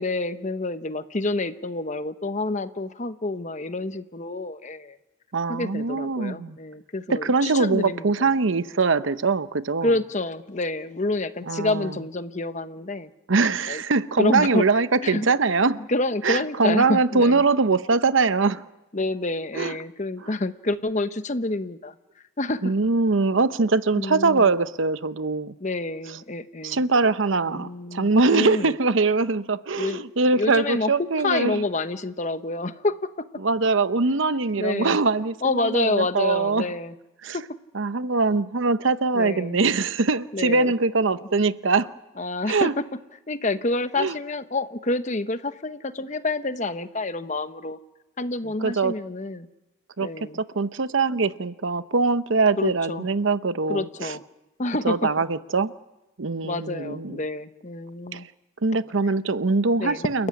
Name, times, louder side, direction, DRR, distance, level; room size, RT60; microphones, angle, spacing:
voice 1, 0.0-5.0 5.5-8.3 9.8-13.1 13.7-13.8 14.2-14.6 15.0-15.3 15.9-17.4 18.9-21.9 22.4-22.7 23.9-24.5 25.6-26.8 27.5-28.7 29.8-30.1 30.3-30.9 31.2-33.1 34.6-35.0 35.4-36.9 37.3-37.4 39.1-39.6 40.3-40.7 42.2-42.7 43.3-47.8 48.2-49.5 50.0-50.4 52.6-53.1 53.7-54.2 54.6-55.0 56.4-58.3 59.8-60.1, left 2 dB, 35° left, 1.0 m, -28 dB
voice 2, 5.3-6.6 7.1-9.9 11.5-12.0 13.3-15.8 16.2-18.6 19.5-19.7 20.2-20.3 22.6-25.5 26.6-31.6 33.4-36.7 37.2-37.4 37.7-41.9 42.5-42.7 44.0-44.2 48.6-48.9 50.0-50.1 50.3-54.2 54.8-55.7 56.2-57.2 58.1-58.2 58.6-60.3, right 3 dB, 75° right, 0.8 m, -22 dB
29.0 x 15.0 x 9.7 m
head